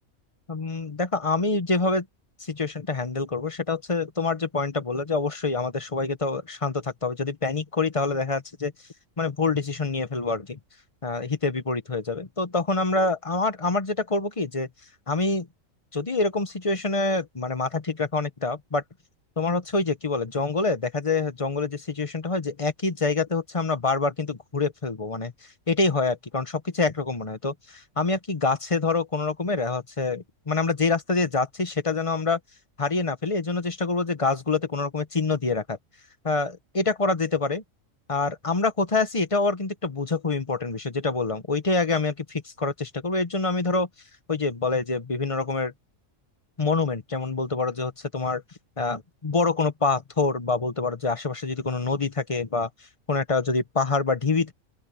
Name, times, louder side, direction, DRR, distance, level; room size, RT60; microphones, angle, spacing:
voice 1, 0.5-2.0 2.4-8.7 9.2-10.6 11.0-14.7 15.1-15.5 15.9-18.8 19.4-25.3 25.7-32.4 32.8-35.8 36.2-37.6 38.1-43.9 44.3-45.7 46.6-48.4 48.8-52.7 53.1-54.5, left 3 dB, 25° left, 0.9 m, -26 dB
open air
omnidirectional pair, 1.4 m